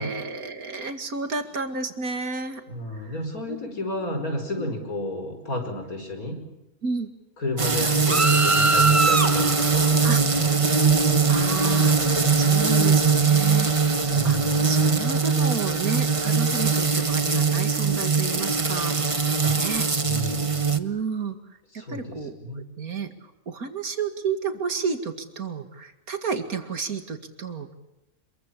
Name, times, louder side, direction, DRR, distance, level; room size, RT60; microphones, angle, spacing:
voice 1, 0.0-2.6 2.9-3.2 3.5-3.6 4.6-4.7 6.8-7.1 10.0-10.6 11.3-19.9 20.8-27.7, right 5 dB, 85° right, 8 dB, 2.5 m, -31 dB
voice 2, 2.7-6.4 7.4-10.5 14.1-15.0 19.4-19.6 20.0-20.6 21.8-22.6, left 1 dB, 80° left, 6 dB, 5.6 m, -32 dB
sound 1, 7.6-20.8, right 4 dB, 25° right, 1.2 m, -21 dB
27.0 x 22.5 x 8.7 m, 0.89 s
omnidirectional pair, 1.5 m